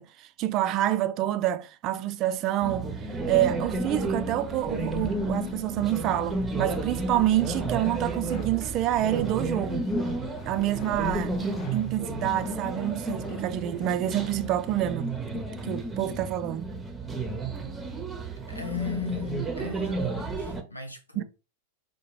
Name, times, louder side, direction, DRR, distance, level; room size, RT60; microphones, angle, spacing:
voice 1, 0.0-2.9 3.3-9.9 10.4-16.7 21.2-21.3, right 13 dB, 35° right, 0.3 m, -27 dB
sound 1, 2.6-20.6, right 2 dB, 10° right, 0.6 m, -32 dB
sound 2, 4.9-14.9, left 5 dB, 30° left, 0.7 m, -47 dB
voice 2, 18.5-21.2, left 7 dB, 85° left, 0.7 m, -36 dB
4.6 x 2.2 x 3.1 m
figure-of-eight pair, 90°, 0 cm